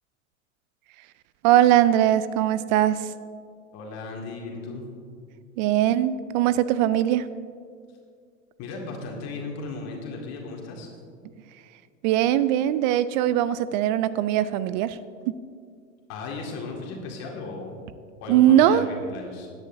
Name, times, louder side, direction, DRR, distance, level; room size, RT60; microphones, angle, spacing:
voice 1, 1.4-3.1 5.6-7.2 12.0-15.0 18.3-18.9, right 12 dB, 40° right, 15 dB, 0.4 m, -20 dB
voice 2, 3.7-4.9 8.6-10.9 16.1-17.8 18.2-19.5, left 3 dB, 40° left, 0 dB, 2.1 m, -36 dB
16.5 x 10.5 x 2.7 m, 2.2 s
figure-of-eight pair, 90°, 39 cm